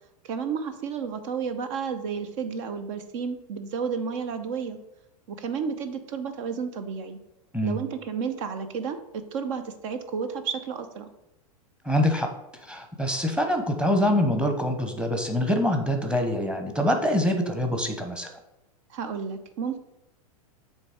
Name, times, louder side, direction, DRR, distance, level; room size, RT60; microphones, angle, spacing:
voice 1, 0.2-4.8 5.3-7.2 7.6-11.1 18.9-19.8, right 6 dB, 55° right, 9 dB, 0.8 m, -32 dB
voice 2, 11.8-12.3 12.6-18.3, left 1 dB, 5° right, 4 dB, 1.0 m, -25 dB
7.5 x 3.3 x 4.8 m, 0.87 s
hypercardioid pair, 105°, 19 cm